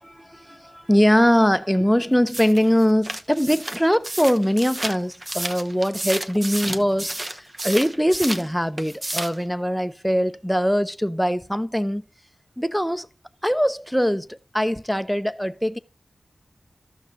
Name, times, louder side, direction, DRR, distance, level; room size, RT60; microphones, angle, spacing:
voice 1, 0.0-12.0 12.6-13.1 13.4-15.8, equal, ahead, 0.8 m, -22 dB
sound 1, 2.3-8.5 8.8-9.4, right 1 dB, 35° right, 1.0 m, -31 dB
13.5 x 6.0 x 3.8 m
cardioid pair, 55°, 0 cm